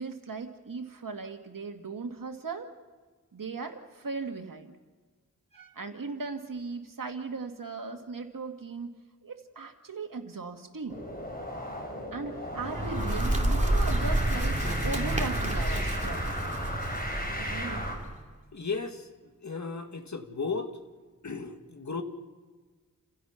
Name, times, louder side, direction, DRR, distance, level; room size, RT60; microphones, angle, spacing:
voice 1, 0.0-2.7 3.3-4.7 5.5-8.9 9.2-11.0 12.1-16.3 17.4-17.9, right 4 dB, 90° right, 5 dB, 2.2 m, -38 dB
sound 1, 10.9-18.0, left 1 dB, 30° left, 4.8 m, -36 dB
Bird, 12.5-18.2, right 1 dB, 20° right, 2.7 m, -29 dB
voice 2, 18.5-19.1 19.4-20.7 21.2-22.0, left 4 dB, 60° left, 6 dB, 2.0 m, -34 dB
29.0 x 16.0 x 5.9 m, 1.4 s
wide cardioid pair, 70°, 32 cm